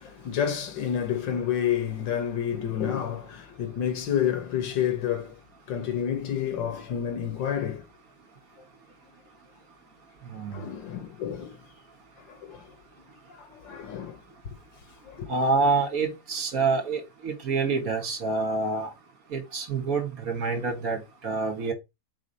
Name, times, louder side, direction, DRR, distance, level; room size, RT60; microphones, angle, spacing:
voice 1, 0.0-5.4 5.7-7.8 10.5-11.6 12.3-12.7 13.0-14.2 15.0-15.3, left 9 dB, 85° left, 2.0 m, -29 dB
voice 2, 15.3-18.9 19.3-21.7, right 4 dB, 50° right, 2.1 m, -27 dB
4.9 x 3.7 x 5.4 m
omnidirectional pair, 1.9 m